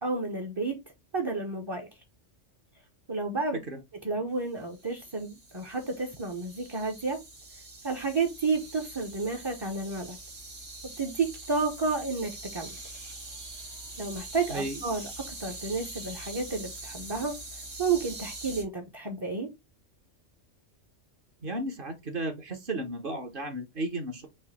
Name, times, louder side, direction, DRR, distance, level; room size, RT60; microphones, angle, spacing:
voice 1, 0.0-0.8 1.1-1.9 3.1-3.6 4.0-7.2 7.8-10.2 11.0-12.8 14.0-15.1 15.4-17.4 17.8-19.5, right 4 dB, 25° right, 0.7 m, -31 dB
sound 1, 4.7-18.6, right 2 dB, 75° right, 2.1 m, -44 dB
voice 2, 14.5-14.8 21.4-24.3, right 1 dB, 50° right, 1.1 m, -34 dB
4.9 x 2.7 x 4.1 m
omnidirectional pair, 1.2 m